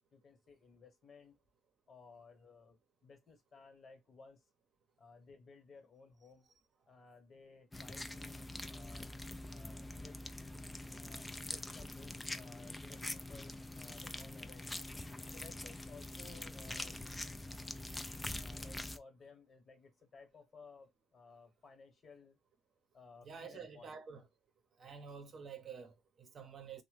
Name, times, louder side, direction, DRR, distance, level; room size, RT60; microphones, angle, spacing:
voice 1, 0.1-1.3 1.9-4.4 5.0-6.5 6.9-9.1 9.5-10.2 10.9-14.7 15.3-17.0 18.3-22.4 22.9-24.0, left 4 dB, 40° left, 1.2 m, -58 dB
sound 1, 7.7-19.0, left 2 dB, 15° left, 0.4 m, -44 dB
voice 2, 23.2-24.3 24.8-26.8, right 6 dB, 45° right, 0.7 m, -49 dB
2.9 x 2.1 x 3.1 m
supercardioid pair, 85°, 0 cm